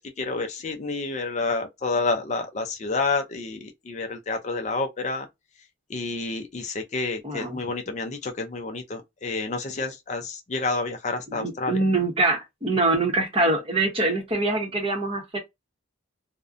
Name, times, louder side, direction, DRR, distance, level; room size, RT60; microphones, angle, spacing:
voice 1, 0.0-5.3 5.9-11.8, left 3 dB, 35° left, 0.4 m, -29 dB
voice 2, 7.2-7.6 11.3-15.4, right 2 dB, 25° right, 0.7 m, -24 dB
2.5 x 2.0 x 2.4 m
head